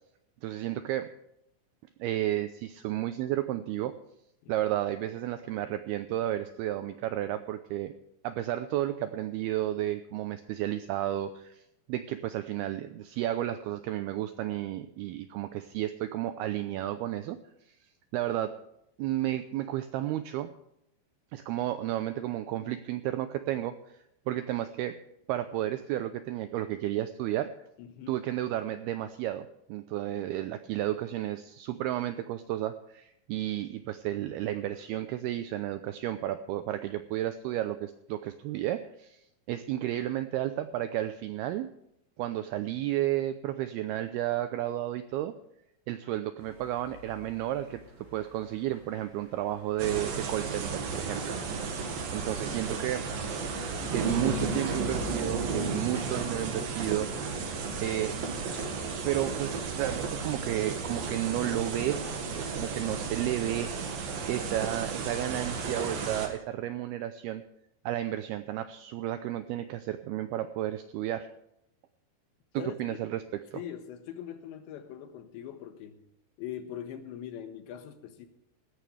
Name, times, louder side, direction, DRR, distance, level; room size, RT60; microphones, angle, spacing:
voice 1, 0.4-1.1 2.0-3.9 4.5-7.9 8.2-11.6 11.9-17.4 18.1-18.5 19.0-20.5 21.3-23.8 24.3-25.0 25.3-27.5 28.1-39.2 39.5-41.7 42.2-45.3 45.9-47.8 48.1-51.6 52.1-53.1 53.9-57.5 57.8-58.2 59.0-63.7 64.3-67.4 67.9-71.3 72.5-73.2 73.5-73.6, right 13 dB, 90° right, 10 dB, 2.2 m, -32 dB
voice 2, 27.8-28.2 53.2-53.9 72.6-72.8 73.5-76.0 76.4-78.3, left 10 dB, 80° left, 7 dB, 3.5 m, -42 dB
sound 1, 46.4-57.5, left 5 dB, 25° right, 3.6 m, -49 dB
sound 2, 49.8-66.3, right 4 dB, 60° right, 3.3 m, -33 dB
18.0 x 14.5 x 3.3 m, 0.81 s
omnidirectional pair, 5.2 m